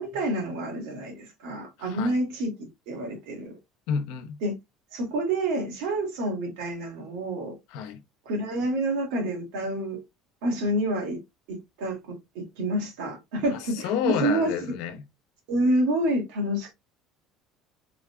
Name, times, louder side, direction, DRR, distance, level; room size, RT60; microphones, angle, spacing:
voice 1, 0.0-3.6 4.4-4.5 4.9-7.6 8.3-10.0 10.4-11.2 11.5-14.5 15.5-16.7, right 1 dB, 80° right, 1.9 m, -28 dB
voice 2, 1.8-2.2 3.9-4.4 7.7-8.0 13.5-15.0, left 7 dB, 65° left, 0.7 m, -30 dB
3.9 x 3.6 x 2.2 m
cardioid pair, 180°, 0 cm